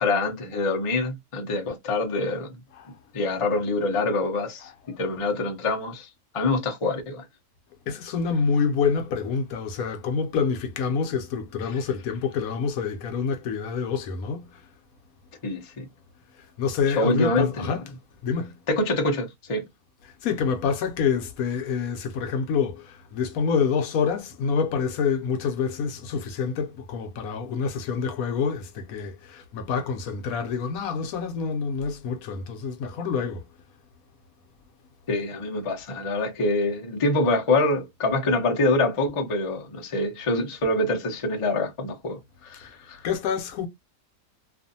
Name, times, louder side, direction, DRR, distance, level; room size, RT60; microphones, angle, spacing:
voice 1, 0.0-2.5 3.1-4.7 5.0-6.1 6.3-7.3 15.4-15.8 17.0-17.7 18.7-19.6 35.1-43.0, left 2 dB, 40° left, 0.4 m, -25 dB
voice 2, 7.9-14.6 16.6-17.9 18.2-18.6 20.2-33.4 42.6-42.7 43.0-43.7, left 6 dB, 75° left, 1.0 m, -27 dB
2.5 x 2.4 x 2.6 m
omnidirectional pair, 1.6 m